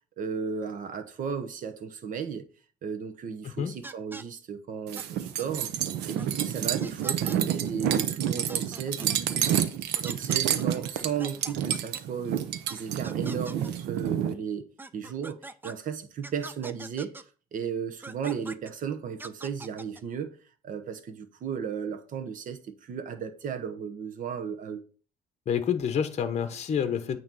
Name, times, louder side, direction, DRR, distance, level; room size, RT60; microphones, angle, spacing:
voice 1, 0.2-2.5 2.8-5.7 6.1-9.7 10.0-14.6 14.9-17.1 17.5-20.4 20.6-24.8, right 7 dB, 50° right, 1.0 m, -35 dB
voice 2, 3.4-3.8 25.5-27.2, left 8 dB, 40° left, 0.8 m, -28 dB
sound 1, 3.8-4.2 5.0-5.1 5.4-5.5 6.2-6.3 6.8-7.4 8.0-8.1 8.4-9.2 10.0-12.0 12.7-12.8 13.0-13.7 14.8-15.7 16.2-17.2 18.0-18.7 19.2-20.0, right 2 dB, 10° right, 0.4 m, -43 dB
sound 2, 4.9-14.3, right 10 dB, 80° right, 0.7 m, -29 dB
8.8 x 3.0 x 5.4 m
cardioid pair, 110°, 17 cm